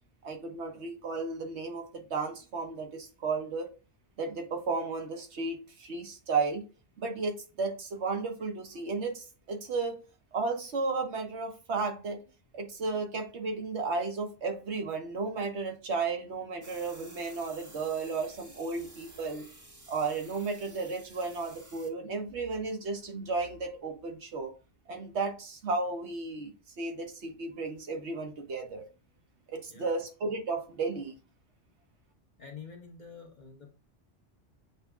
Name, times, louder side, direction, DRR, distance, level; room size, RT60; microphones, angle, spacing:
voice 1, 0.2-3.7 4.2-6.6 7.0-10.0 10.3-12.2 12.5-19.5 19.9-24.5 24.9-28.8 29.5-31.1, right 4 dB, 75° right, 4 dB, 1.2 m, -34 dB
sound 1, 16.6-21.9, right 1 dB, 20° right, 0.7 m, -53 dB
voice 2, 32.4-33.7, left 6 dB, 45° left, 0 dB, 1.1 m, -47 dB
7.9 x 2.7 x 2.3 m, 0.34 s
omnidirectional pair, 1.2 m